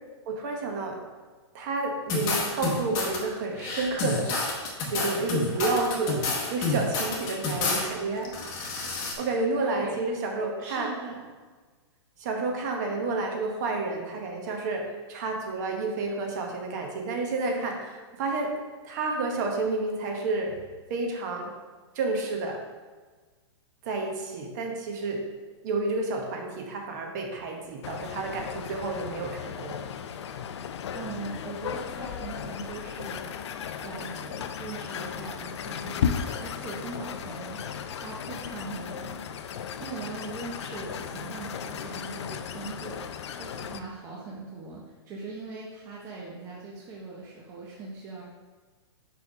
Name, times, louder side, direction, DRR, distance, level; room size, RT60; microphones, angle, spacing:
voice 1, 0.3-1.0 1.5-4.3 4.9-8.3 9.2-10.9 12.2-18.5 18.8-20.6 20.9-21.5 21.9-22.6 23.8-25.2 25.6-29.8, right 3 dB, 40° right, 2 dB, 1.1 m, -30 dB
sound 1, 2.1-3.2 3.6-7.9 8.2-9.1, left 3 dB, 25° left, 0.9 m, -29 dB
voice 2, 9.6-10.1 10.6-11.3 30.9-33.3 33.8-37.6 37.9-39.5 39.8-48.2, right 3 dB, 15° right, -4 dB, 0.7 m, -40 dB
sound 2, 27.8-43.8, left 7 dB, 75° left, 0.5 m, -35 dB
5.3 x 4.7 x 4.7 m, 1.4 s
hypercardioid pair, 165°, 15 cm